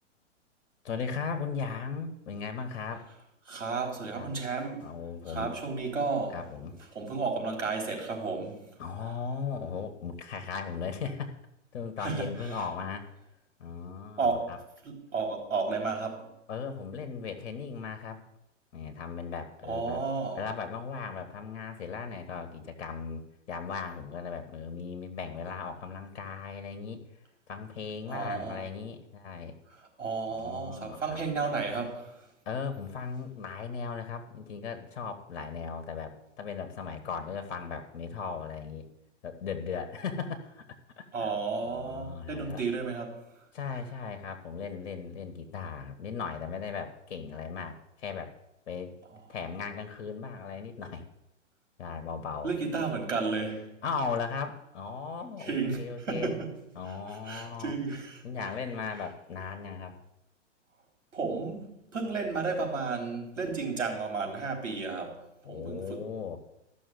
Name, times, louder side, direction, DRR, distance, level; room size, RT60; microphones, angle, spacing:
voice 1, 0.8-3.1 4.2-4.3 4.8-5.6 6.3-6.7 8.8-11.3 11.7-13.1 13.6-14.6 16.5-18.2 18.7-20.0 20.4-27.0 27.5-29.5 30.3-31.2 32.5-38.9 39.2-40.7 41.0-41.3 41.7-42.6 43.5-48.3 48.7-48.9 49.3-51.1 51.8-52.5 53.8-56.3 56.8-57.7 58.2-60.0 65.4-66.4, left 5 dB, 60° left, 1.7 m, -37 dB
voice 2, 3.5-4.9 5.3-6.4 6.9-8.7 12.0-12.6 14.2-14.6 14.8-16.3 19.6-20.5 28.1-28.7 30.0-32.3 41.1-43.3 52.4-53.8 55.4-56.5 56.8-58.2 61.1-66.1, right 4 dB, 70° right, 4.3 m, -33 dB
13.5 x 6.3 x 7.9 m
figure-of-eight pair, 115°, 37 cm